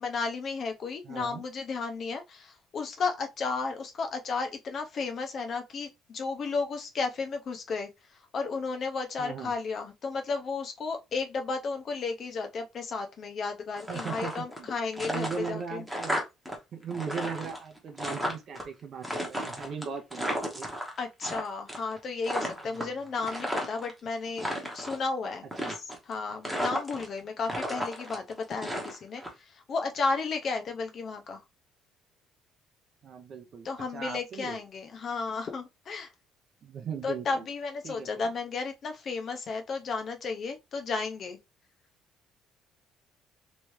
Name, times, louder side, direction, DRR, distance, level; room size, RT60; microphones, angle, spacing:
voice 1, 0.0-7.9 8.3-15.8 21.0-24.5 24.7-31.4 33.6-36.1 37.0-41.4, left 4 dB, 40° left, 0.7 m, -33 dB
voice 2, 1.0-1.4 9.2-9.5 13.9-14.7 15.0-16.2 16.7-20.7 22.6-22.9 25.6-25.7 33.0-34.6 36.6-37.5 37.8-38.1, right 6 dB, 40° right, 0.6 m, -38 dB
sound 1, 13.8-14.7 14.9-16.6 16.8-18.6 19.0-21.4 21.7-22.0 22.2-23.9 24.3-25.0 25.5-26.1 26.4-27.2 27.5-29.3, equal, 5° right, 0.9 m, -33 dB
3.3 x 3.1 x 3.1 m
cardioid pair, 160°, 0 cm